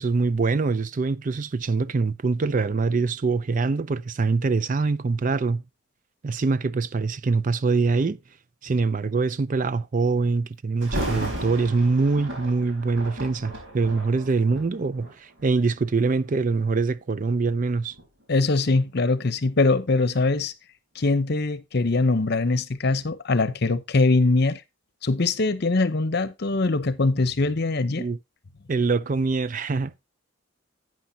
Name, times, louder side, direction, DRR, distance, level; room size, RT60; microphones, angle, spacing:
voice 1, 0.0-5.6 6.2-8.2 8.6-18.0 28.0-28.2 28.7-30.0, right 4 dB, 40° right, 0.4 m, -24 dB
Thunder, 10.8-15.8 16.4-16.7 17.3-20.1 20.5-20.6, right 1 dB, 65° right, 4.5 m, -35 dB
voice 2, 18.3-20.5 21.0-24.6 25.0-28.1, left 3 dB, 50° left, 0.8 m, -22 dB
11.5 x 9.0 x 2.7 m
head